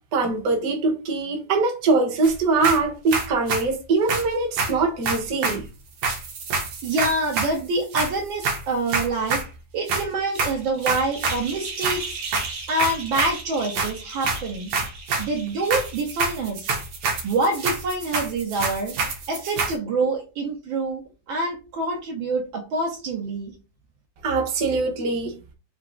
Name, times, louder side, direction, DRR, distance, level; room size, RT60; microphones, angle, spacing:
voice 1, 0.1-5.6 24.2-25.4, right 3 dB, 50° right, 1.4 m, -22 dB
sound 1, 2.2-2.4 2.6-3.6 4.1-5.6 6.0-7.6 7.9-9.5 9.9-10.1 10.4-19.8, right 4 dB, 80° right, 1.9 m, -27 dB
voice 2, 6.8-9.4 9.7-12.2 12.7-14.7 15.2-16.8 17.2-18.9 19.3-21.0 21.3-23.5, right 2 dB, 65° right, 1.6 m, -26 dB
4.5 x 2.9 x 3.8 m
omnidirectional pair, 2.4 m